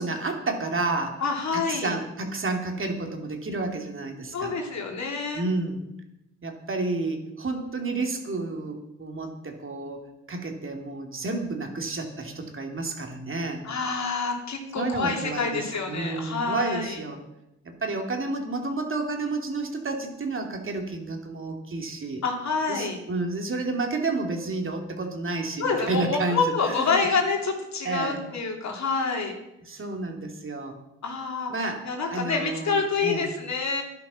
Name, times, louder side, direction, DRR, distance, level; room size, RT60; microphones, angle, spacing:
voice 1, 0.0-1.2 1.5-4.5 5.3-5.8 6.4-10.0 10.3-13.6 14.7-17.2 17.6-22.2 22.7-27.1 27.8-28.2 29.7-30.8 31.5-31.8 32.1-33.3, right 3 dB, 40° right, 3 dB, 2.7 m, -30 dB
voice 2, 1.2-1.9 4.3-5.4 13.6-17.0 22.2-23.0 25.6-29.4 31.0-31.5 31.8-33.8, left 4 dB, 60° left, 1 dB, 3.0 m, -27 dB
11.0 x 10.5 x 6.2 m, 0.90 s
cardioid pair, 75°, 31 cm